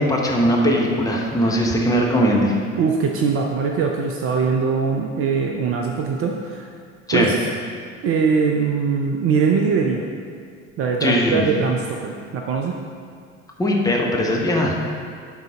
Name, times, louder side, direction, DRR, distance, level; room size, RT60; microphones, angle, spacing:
voice 1, 0.0-2.6 7.1-7.3 11.0-11.4 13.6-14.8, equal, 10° left, -3 dB, 1.2 m, -19 dB
voice 2, 2.8-6.7 7.1-7.4 8.0-10.0 10.8-12.8, right 5 dB, 35° right, 2 dB, 0.6 m, -21 dB
11.5 x 4.0 x 3.7 m, 2.1 s
figure-of-eight pair, 65°, 38 cm